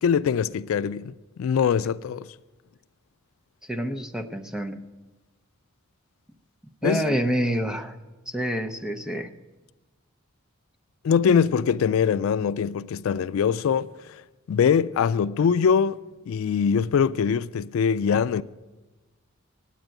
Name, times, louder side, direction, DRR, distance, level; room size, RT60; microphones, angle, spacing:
voice 1, 0.0-2.3 6.8-7.1 11.0-16.0 16.3-18.4, left 7 dB, 75° left, 0.3 m, -23 dB
voice 2, 3.6-4.8 6.8-8.0 8.3-9.3, equal, 5° right, 0.6 m, -27 dB
9.2 x 8.8 x 8.9 m
head